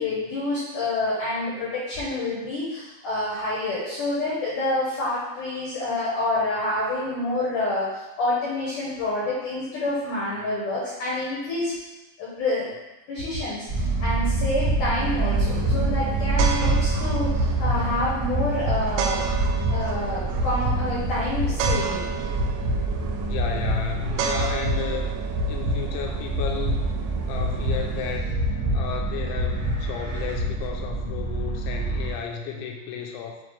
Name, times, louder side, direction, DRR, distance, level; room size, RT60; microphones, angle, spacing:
voice 1, 0.0-11.7 12.2-12.7 13.1-19.2 19.7-22.0, left 2 dB, 70° left, -7 dB, 2.0 m, -28 dB
sound 1, 13.7-32.1, right 2 dB, 50° right, 1.6 m, -26 dB
sound 2, 15.0-28.2, right 6 dB, 85° right, 3.0 m, -34 dB
voice 2, 23.3-25.1 25.5-27.0 27.2-28.2 28.7-33.4, left 7 dB, 85° left, 1 dB, 3.1 m, -33 dB
8.2 x 3.7 x 3.3 m, 1.0 s
omnidirectional pair, 5.4 m